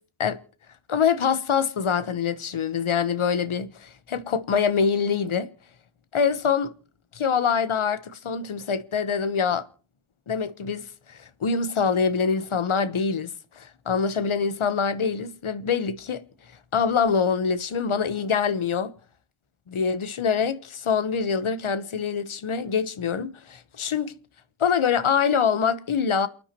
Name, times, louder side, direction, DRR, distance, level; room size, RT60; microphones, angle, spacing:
voice 1, 0.9-5.5 6.1-6.7 7.1-9.6 10.3-16.2 16.7-18.9 19.7-24.1 24.6-26.3, left 6 dB, 85° left, 1.2 m, -25 dB
29.0 x 9.6 x 3.0 m
cardioid pair, 50°, 48 cm